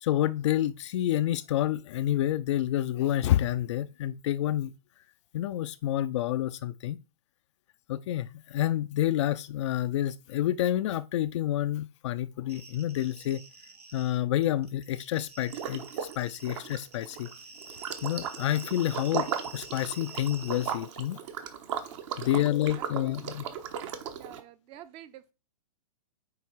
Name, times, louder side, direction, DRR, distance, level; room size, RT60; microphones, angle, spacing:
voice 1, 0.0-4.7 5.3-7.0 7.9-13.4 13.9-15.9 16.2-17.3 18.0-21.2 22.2-23.5, left 12 dB, 50° left, 0.5 m, -28 dB
sound 1, 12.5-14.2 14.4-21.1, right 3 dB, 90° right, 2.0 m, -48 dB
Liquid, 15.5-16.2 16.4-24.4, right 8 dB, 50° right, 1.1 m, -36 dB
voice 2, 22.2-23.1 24.2-25.3, right 11 dB, 30° right, 0.7 m, -49 dB
9.4 x 3.2 x 4.5 m
hypercardioid pair, 120°, 20 cm